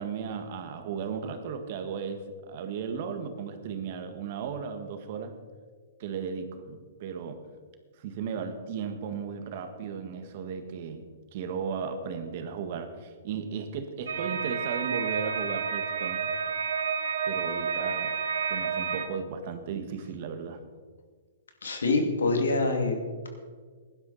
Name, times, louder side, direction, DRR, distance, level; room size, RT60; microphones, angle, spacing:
voice 1, 0.0-5.3 6.0-7.4 8.0-16.3 17.3-18.1 18.5-20.7, right 6 dB, 50° right, 7 dB, 1.7 m, -35 dB
sound 1, 14.1-19.1, right 6 dB, 80° right, 1.2 m, -30 dB
voice 2, 21.6-23.3, left 3 dB, 85° left, 4 dB, 2.5 m, -26 dB
16.5 x 11.5 x 4.2 m, 1.5 s
hypercardioid pair, 135°, 0 cm